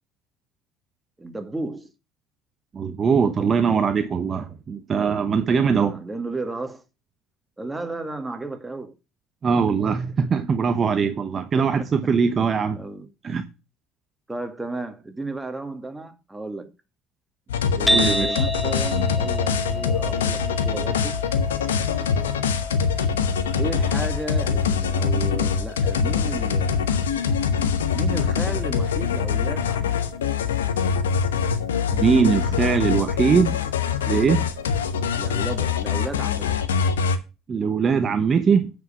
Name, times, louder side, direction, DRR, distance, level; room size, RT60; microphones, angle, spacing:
voice 1, 1.2-1.9 5.7-6.8 7.6-9.0 11.5-11.7 12.8-13.1 14.3-16.7 17.7-21.1 23.6-26.9 27.9-30.0 35.1-36.6, right 2 dB, 10° right, 2.0 m, -33 dB
voice 2, 2.7-6.0 9.4-12.8 13.2-13.5 17.9-18.5 31.9-33.6 34.1-34.4 37.5-38.7, right 6 dB, 40° right, 1.0 m, -21 dB
sound 1, 17.5-37.2, left 6 dB, 85° left, 1.0 m, -24 dB
sound 2, 17.9-34.1, equal, 10° left, 0.7 m, -33 dB
9.4 x 5.3 x 5.7 m
hypercardioid pair, 65°, 0 cm